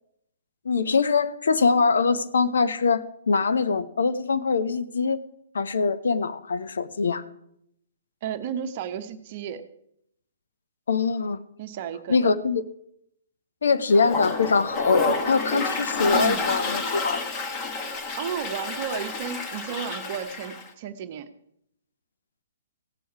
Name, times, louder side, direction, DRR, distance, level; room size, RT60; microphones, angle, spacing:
voice 1, 0.6-5.2 5.5-7.2 10.9-11.4 12.1-12.6 13.6-17.2, left 4 dB, 65° left, 12 dB, 0.7 m, -23 dB
voice 2, 8.2-9.6 11.6-12.3 16.1-16.5 18.2-21.3, right 8 dB, 40° right, 10 dB, 0.8 m, -33 dB
Toilet flush, 13.9-20.7, left 3 dB, 25° left, 1.4 m, -29 dB
16.5 x 7.0 x 4.7 m, 0.74 s
figure-of-eight pair, 120°, 0 cm